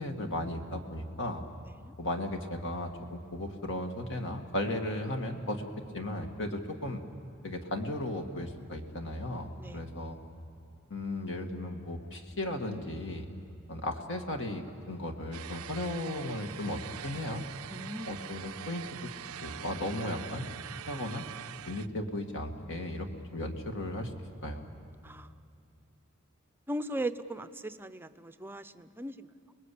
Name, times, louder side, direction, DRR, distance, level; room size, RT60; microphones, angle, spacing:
voice 1, 0.0-1.4 2.0-5.6 5.9-7.0 7.4-10.2 10.9-13.3 13.7-17.4 18.1-19.0 19.4-20.5 20.9-21.2 21.7-24.1 24.4-24.7, left 1 dB, 60° left, 4 dB, 2.1 m, -35 dB
voice 2, 1.6-1.9 9.6-9.8 17.7-18.2 25.0-25.4 26.7-29.6, right 1 dB, 10° right, 10 dB, 0.7 m, -39 dB
sound 1, 15.3-21.9, right 10 dB, 85° right, 0.5 m, -44 dB
29.5 x 20.5 x 8.5 m, 2.7 s
head